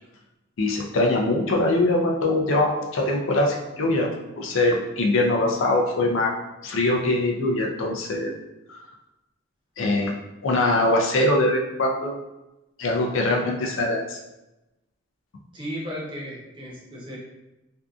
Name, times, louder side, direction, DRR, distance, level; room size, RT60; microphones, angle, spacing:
voice 1, 0.6-4.1 4.4-6.3 6.6-8.3 8.7-8.8 9.8-10.2 10.4-12.2 12.8-14.2, left 2 dB, 65° left, 1 dB, 0.4 m, -22 dB
voice 2, 15.5-17.2, equal, 25° right, -5 dB, 0.7 m, -35 dB
2.6 x 2.4 x 2.3 m, 0.97 s
head